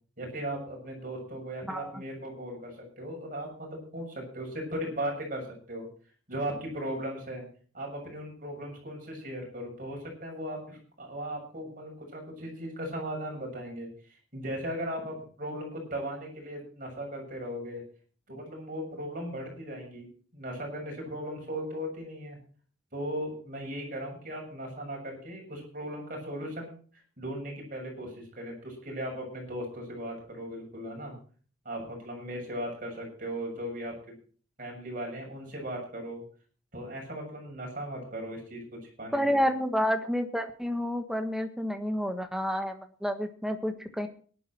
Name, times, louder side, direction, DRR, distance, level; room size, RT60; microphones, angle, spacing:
voice 1, 0.2-5.9 6.3-7.5 7.7-17.8 18.3-20.1 20.3-22.4 22.9-26.7 27.2-31.2 31.7-34.2 34.6-36.2 36.7-39.4, equal, 40° right, 1 dB, 7.0 m, -37 dB
voice 2, 1.7-2.0 39.1-44.1, equal, ahead, 7 dB, 1.4 m, -29 dB
18.5 x 11.5 x 4.4 m, 0.43 s
head